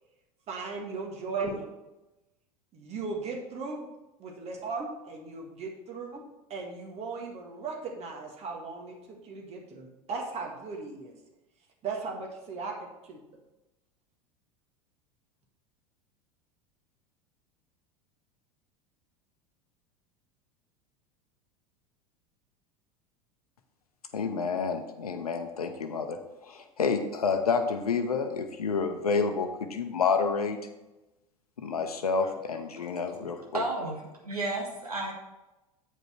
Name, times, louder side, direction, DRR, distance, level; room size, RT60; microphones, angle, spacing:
voice 1, 0.5-1.7 2.7-3.9 4.2-6.2 6.5-11.1 11.8-13.2, right 4 dB, 35° right, 1 dB, 1.8 m, -37 dB
voice 2, 24.1-30.6 31.6-33.6, left 5 dB, 75° left, 7 dB, 0.9 m, -29 dB
voice 3, 33.5-35.1, right 2 dB, 80° right, 0 dB, 1.7 m, -33 dB
8.7 x 5.3 x 4.4 m, 1.0 s
figure-of-eight pair, 80°, 19 cm